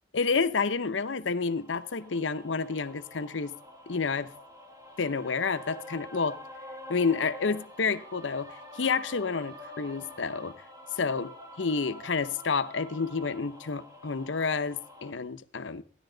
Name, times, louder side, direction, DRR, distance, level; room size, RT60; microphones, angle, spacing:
voice 1, 0.1-3.5 3.9-4.3 5.0-6.4 6.9-10.5 10.9-15.8, left 4 dB, 75° left, 0.8 m, -29 dB
sound 1, 1.5-15.1, left 1 dB, 20° right, 1.3 m, -47 dB
15.0 x 11.0 x 3.9 m
head